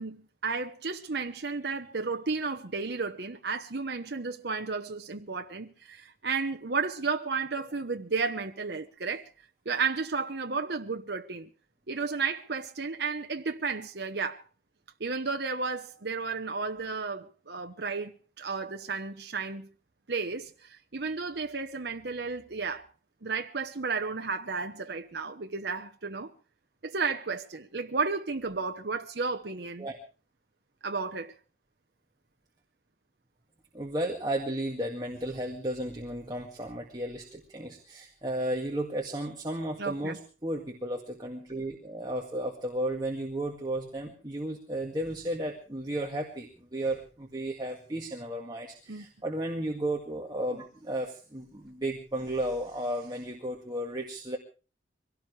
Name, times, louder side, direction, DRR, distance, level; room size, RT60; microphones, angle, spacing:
voice 1, 0.0-9.3 9.6-11.5 11.9-14.4 15.0-19.7 20.1-22.9 23.2-26.3 26.8-29.9 30.8-31.3 39.8-40.2 48.9-49.0, right 4 dB, 65° right, 1.0 m, -33 dB
voice 2, 33.7-54.4, right 1 dB, 20° right, 2.1 m, -34 dB
23.5 x 17.5 x 3.3 m
head